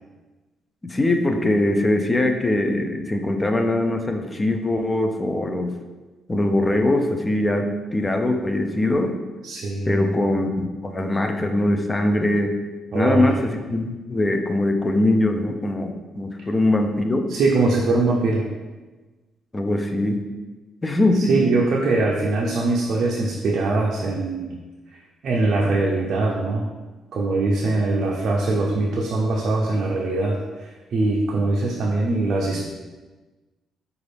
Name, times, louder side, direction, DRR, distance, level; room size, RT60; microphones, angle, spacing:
voice 1, 0.8-5.7 6.3-9.2 9.9-12.5 12.9-17.3 19.5-20.2 20.8-21.4, left 1 dB, 20° left, 5 dB, 0.4 m, -22 dB
voice 2, 9.4-10.2 12.9-13.4 17.3-18.5 21.1-24.6 24.9-26.7 27.1-32.6, right 2 dB, 60° right, -2 dB, 0.5 m, -22 dB
4.9 x 2.4 x 3.3 m, 1.2 s
cardioid pair, 90°, 0 cm